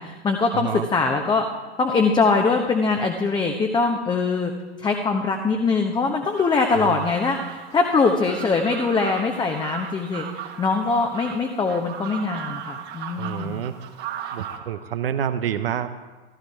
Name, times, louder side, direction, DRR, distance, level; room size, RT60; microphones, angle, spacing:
voice 1, 0.0-1.4 1.8-4.5 4.8-13.6, left 4 dB, 15° left, 3 dB, 1.1 m, -22 dB
voice 2, 0.5-0.9 6.7-7.1 13.2-13.7 14.3-15.9, right 9 dB, 60° right, 10 dB, 0.9 m, -28 dB
sound 1, 6.3-14.6, right 9 dB, 30° right, 1.6 m, -37 dB
15.0 x 14.5 x 4.8 m, 1.3 s
figure-of-eight pair, 95°, 33 cm